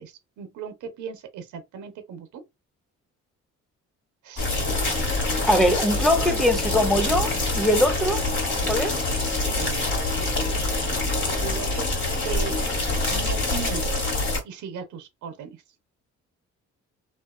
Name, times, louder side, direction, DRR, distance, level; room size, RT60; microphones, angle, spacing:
voice 1, 0.0-2.4 4.2-4.5 9.6-11.9 12.2-12.6 13.1-14.1 14.4-15.6, right 6 dB, 75° right, 0.8 m, -38 dB
sound 1, 4.4-14.4, left 2 dB, 40° left, 1.5 m, -25 dB
voice 2, 5.5-8.3 8.7-9.1, equal, ahead, 0.6 m, -22 dB
2.6 x 2.3 x 2.3 m
cardioid pair, 90°, 30 cm